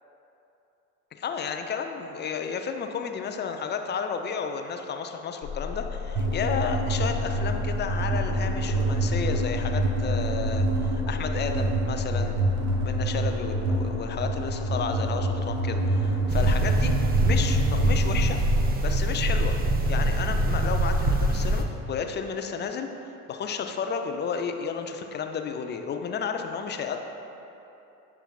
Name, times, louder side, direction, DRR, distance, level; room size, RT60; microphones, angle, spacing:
voice 1, 1.1-12.4 12.8-18.4 18.8-19.5 19.9-27.0, left 6 dB, 20° left, 6 dB, 0.5 m, -32 dB
sound 1, 5.4-20.6, left 4 dB, 45° left, 1.0 m, -35 dB
sound 2, 6.1-18.2, right 2 dB, 70° right, 1.2 m, -27 dB
sound 3, 16.3-21.6, right 1 dB, 20° right, 0.8 m, -24 dB
15.5 x 5.8 x 2.4 m, 3.0 s
figure-of-eight pair, 60°, 48 cm